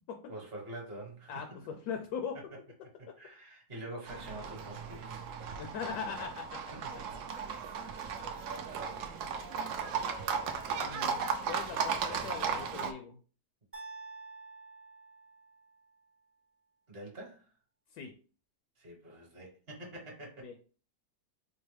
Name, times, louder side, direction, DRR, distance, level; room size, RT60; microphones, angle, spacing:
voice 1, 0.3-1.6 3.0-5.2 7.1-7.2 7.7-8.3 16.9-17.4 18.8-20.5, right 1 dB, 40° right, 1.3 m, -46 dB
voice 2, 1.3-2.4 5.6-6.6 10.7-13.2 17.9-18.1 20.4-20.7, left 6 dB, 70° left, 1.0 m, -40 dB
Livestock farm animals working animals, 4.1-12.9, right 6 dB, 70° right, 0.7 m, -36 dB
sound 1, 13.7-15.9, right 3 dB, 10° right, 0.7 m, -49 dB
4.5 x 2.1 x 3.2 m
omnidirectional pair, 1.8 m